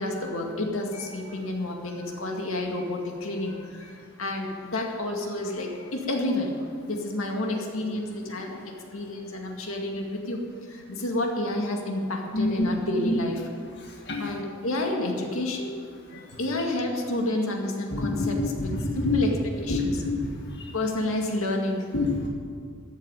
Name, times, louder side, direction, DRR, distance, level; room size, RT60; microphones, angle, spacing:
voice 1, 0.0-6.5 6.8-13.4 14.2-15.7 16.4-18.7 19.0-19.3 19.6-20.0 20.7-21.9, left 1 dB, 85° left, 1 dB, 2.1 m, -30 dB
voice 2, 12.3-12.7 13.0-13.2 14.1-14.2 17.9-19.2 19.7-20.4 21.9-22.3, left 2 dB, 55° left, 0 dB, 1.6 m, -26 dB
14.0 x 8.3 x 9.1 m, 2.2 s
head